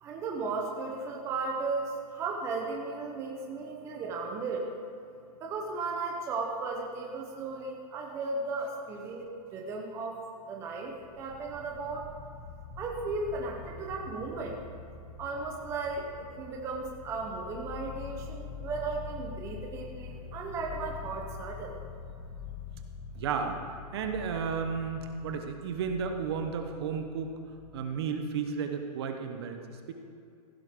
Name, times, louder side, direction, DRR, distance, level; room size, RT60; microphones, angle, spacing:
voice 1, 0.0-4.7 5.4-12.1 12.8-14.6 15.2-21.8, right 3 dB, 15° right, 0 dB, 0.8 m, -35 dB
sound 1, 10.9-28.2, left 6 dB, 30° left, 1.4 m, -45 dB
voice 2, 23.1-23.6 23.9-27.3 27.7-29.6 29.9-30.0, right 6 dB, 40° right, 5 dB, 0.9 m, -33 dB
15.5 x 10.5 x 3.7 m, 2.6 s
hypercardioid pair, 170°, 20 cm